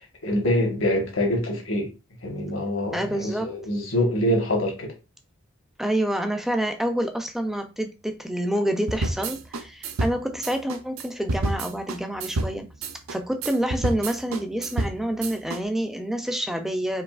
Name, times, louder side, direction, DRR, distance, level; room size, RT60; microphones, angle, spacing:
voice 1, 0.2-1.9 2.2-4.9, left 1 dB, 65° left, 1.4 m, -25 dB
voice 2, 2.9-3.5 5.8-12.7 13.1-17.0, right 1 dB, ahead, 0.4 m, -27 dB
sound 1, 8.9-15.6, right 2 dB, 75° right, 0.6 m, -29 dB
4.8 x 2.7 x 2.4 m
head